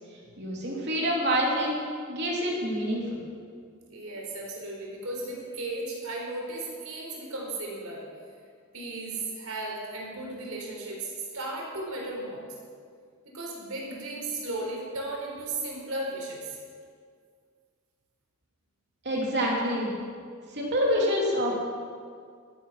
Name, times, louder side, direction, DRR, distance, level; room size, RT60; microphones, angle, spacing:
voice 1, 0.4-1.8 2.1-3.2 19.0-19.9 20.5-21.5, equal, 55° right, -3 dB, 3.3 m, -27 dB
voice 2, 3.9-8.0 8.7-12.4 13.3-16.6, right 2 dB, 85° right, -1 dB, 4.1 m, -35 dB
15.0 x 13.0 x 5.8 m, 2.1 s
head